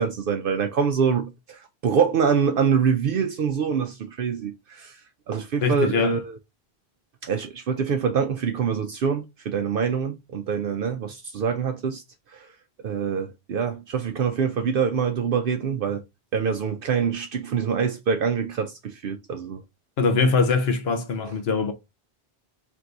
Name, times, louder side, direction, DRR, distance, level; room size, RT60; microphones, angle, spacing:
voice 1, 0.0-6.4 7.2-12.0 12.3-12.5 12.8-16.0 16.3-19.6, right 6 dB, 65° right, 0.7 m, -25 dB
voice 2, 5.6-6.2 20.0-21.7, left 4 dB, 80° left, 1.1 m, -22 dB
3.5 x 2.6 x 4.5 m
omnidirectional pair, 1.0 m